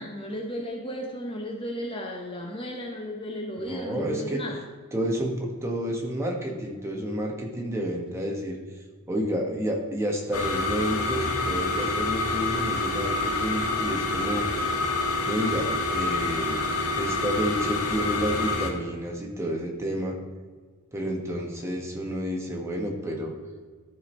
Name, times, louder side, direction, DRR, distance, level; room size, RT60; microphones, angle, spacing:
voice 1, 0.0-4.6, equal, 25° left, 1 dB, 0.8 m, -34 dB
voice 2, 3.6-4.4 4.9-8.6 9.1-14.5 15.3-16.6 17.0-20.1 20.9-23.3, equal, 10° right, 0 dB, 1.2 m, -30 dB
sound 1, 10.3-18.7, left 3 dB, 80° left, 1.4 m, -27 dB
13.0 x 4.9 x 4.4 m, 1.5 s
head